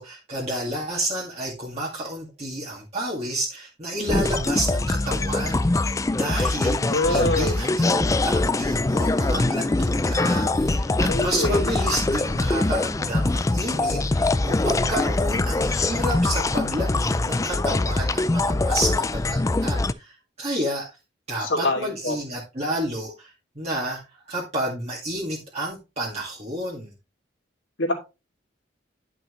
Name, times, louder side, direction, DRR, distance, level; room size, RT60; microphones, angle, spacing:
voice 1, 0.0-20.9 21.3-26.9, right 1 dB, 35° right, -4 dB, 2.1 m, -30 dB
sound 1, 4.1-19.9, left 2 dB, 15° left, 0.3 m, -23 dB
voice 2, 6.9-7.6 11.1-11.8 21.4-22.2 27.8-27.9, left 2 dB, 75° left, 1 dB, 2.8 m, -25 dB
10.5 x 6.0 x 3.1 m, 0.27 s
head